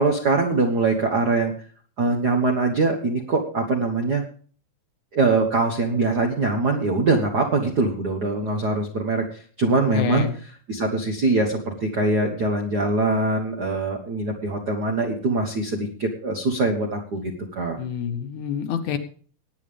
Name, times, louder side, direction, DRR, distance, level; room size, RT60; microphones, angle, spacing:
voice 1, 0.0-1.5 2.0-4.2 5.1-9.2 9.6-10.3 10.7-17.8, right 3 dB, 65° right, 2 dB, 0.9 m, -23 dB
voice 2, 9.9-10.4 17.8-19.0, left 8 dB, 70° left, 8 dB, 2.3 m, -27 dB
20.0 x 9.2 x 3.4 m, 0.43 s
omnidirectional pair, 3.8 m